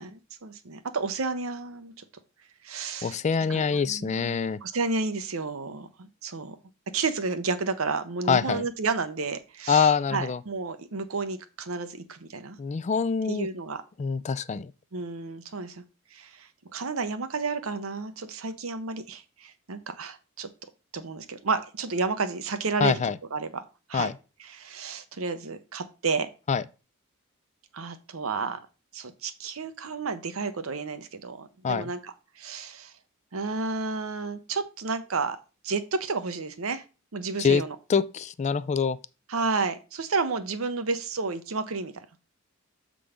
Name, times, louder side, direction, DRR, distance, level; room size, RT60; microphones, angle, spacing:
voice 1, 0.0-1.9 2.6-3.2 3.5-4.4 4.6-6.5 6.9-12.6 13.3-13.8 14.9-15.8 16.1-16.5 16.7-20.5 20.9-23.0 23.3-23.6 23.9-24.1 24.5-26.3 27.7-28.6 28.9-32.9 33.3-35.4 35.6-36.8 37.1-37.8 39.3-41.9, right 4 dB, 85° right, 0.8 m, -31 dB
voice 2, 3.0-4.6 8.3-8.7 9.7-10.4 12.6-13.5 14.0-14.7 22.8-23.2 23.9-24.1 26.5-26.6 31.6-31.9 37.4-37.6 37.9-39.0, left 6 dB, 35° left, 0.4 m, -25 dB
7.0 x 3.8 x 4.9 m
head